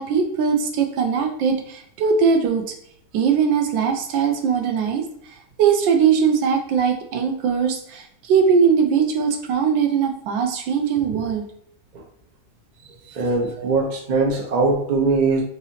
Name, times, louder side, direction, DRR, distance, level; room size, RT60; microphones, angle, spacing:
voice 1, 0.0-2.6 3.1-5.0 5.6-11.4 13.6-13.7, right 6 dB, 85° right, 4 dB, 1.3 m, -20 dB
voice 2, 13.1-15.4, right 3 dB, 65° right, 0 dB, 0.4 m, -21 dB
3.8 x 2.7 x 2.8 m, 0.69 s
omnidirectional pair, 2.0 m